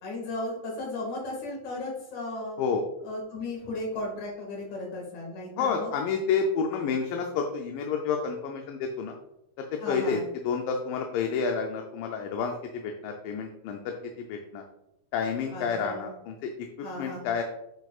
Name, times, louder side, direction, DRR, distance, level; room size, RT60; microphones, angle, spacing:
voice 1, 0.0-2.6 3.0-5.9 9.8-10.2 15.5-16.1 16.8-17.3, left 2 dB, 60° left, -2 dB, 3.2 m, -35 dB
voice 2, 5.6-9.1 9.6-14.6 15.1-16.5 17.0-17.4, left 5 dB, 80° left, 3 dB, 2.3 m, -29 dB
7.7 x 7.2 x 2.4 m, 0.87 s
omnidirectional pair, 3.9 m